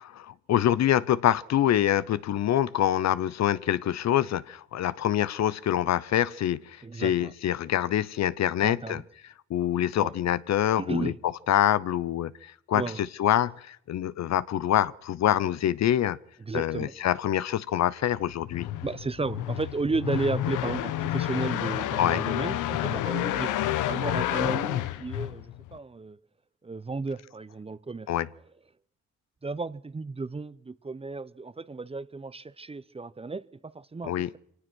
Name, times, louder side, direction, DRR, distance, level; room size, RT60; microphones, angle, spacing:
voice 1, 0.3-9.0 9.5-11.1 11.5-12.8 13.2-16.2 16.5-18.7 22.0-22.2 28.1-28.3 34.0-34.3, left 11 dB, 60° left, 0.8 m, -25 dB
voice 2, 6.8-7.3 8.6-9.0 10.0-10.1 10.8-11.2 12.7-13.0 16.4-16.9 18.8-23.5 23.9-26.2 26.6-28.1 29.4-34.4, right 3 dB, 20° right, 0.8 m, -34 dB
sound 1, 18.2-25.8, left 13 dB, 85° left, 1.0 m, -30 dB
24.5 x 18.5 x 6.2 m
cardioid pair, 90°, 30 cm